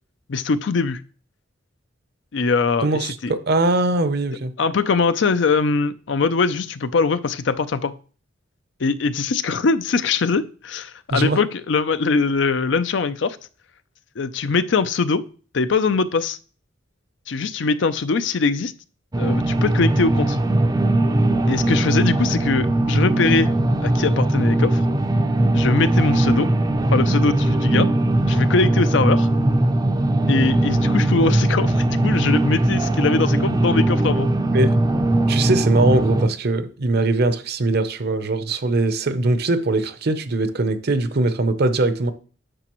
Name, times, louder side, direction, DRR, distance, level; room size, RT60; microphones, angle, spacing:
voice 1, 0.3-1.0 2.3-3.3 4.6-7.9 8.8-13.4 14.2-15.3 15.5-16.4 17.3-18.7 19.2-20.4 21.5-23.5 23.8-24.8 25.5-26.5 26.9-27.9 28.3-29.3 30.3-34.3, left 4 dB, 65° left, 0.5 m, -22 dB
voice 2, 2.8-4.5 11.1-11.4 34.5-34.8 35.3-42.1, right 2 dB, 55° right, 0.7 m, -21 dB
sound 1, 19.1-36.3, right 1 dB, 20° right, 0.5 m, -19 dB
10.0 x 6.6 x 3.0 m
head